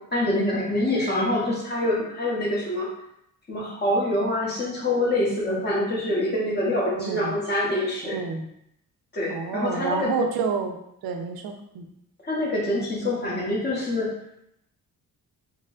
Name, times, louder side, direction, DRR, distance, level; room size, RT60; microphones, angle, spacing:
voice 1, 0.1-2.9 3.5-8.2 9.1-10.1 12.3-14.1, left 1 dB, 30° left, -6 dB, 1.0 m, -25 dB
voice 2, 7.0-7.4 8.0-8.5 9.3-10.8 11.0-11.8, right 5 dB, 75° right, 5 dB, 0.5 m, -28 dB
4.2 x 2.1 x 2.4 m, 0.77 s
cardioid pair, 140°, 36 cm